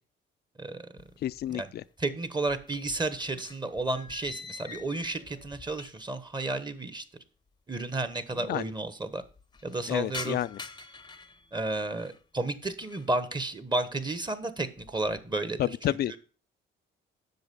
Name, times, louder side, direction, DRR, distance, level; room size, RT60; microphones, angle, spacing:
sound 1, 1.0-1.9 2.1-6.2 6.5-6.6 7.5-7.6 7.7-7.8 8.1-8.6 9.0-12.2 12.7-13.2 13.6-14.0 14.4-15.3, left 3 dB, 20° left, 0.7 m, -46 dB
voice 1, 1.2-1.8 8.5-8.6 9.9-10.6 15.6-16.2, left 12 dB, 55° left, 0.4 m, -30 dB
voice 2, 2.0-7.0 7.7-9.2 9.6-10.4 11.5-16.2, right 2 dB, 20° right, 1.2 m, -32 dB
7.9 x 6.2 x 6.9 m
cardioid pair, 90°, 20 cm